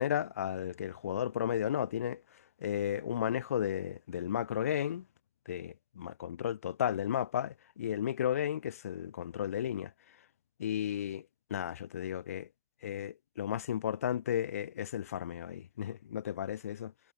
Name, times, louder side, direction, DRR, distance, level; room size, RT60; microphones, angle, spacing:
voice 1, 0.0-2.2 2.6-5.0 5.5-9.9 10.6-11.3 11.5-12.5 12.8-16.9, left 10 dB, 75° left, 0.5 m, -34 dB
figure-of-eight pair, 65°, 8 cm